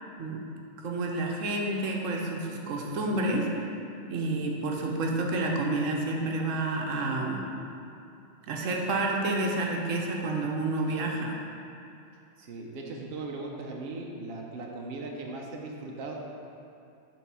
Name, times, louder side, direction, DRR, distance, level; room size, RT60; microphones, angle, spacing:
voice 1, 0.8-3.5 4.1-7.4 8.5-11.4, right 2 dB, 85° right, 0 dB, 1.1 m, -29 dB
voice 2, 12.4-16.2, right 3 dB, 55° right, 0 dB, 0.9 m, -38 dB
7.2 x 3.6 x 6.0 m, 2.6 s
omnidirectional pair, 1.3 m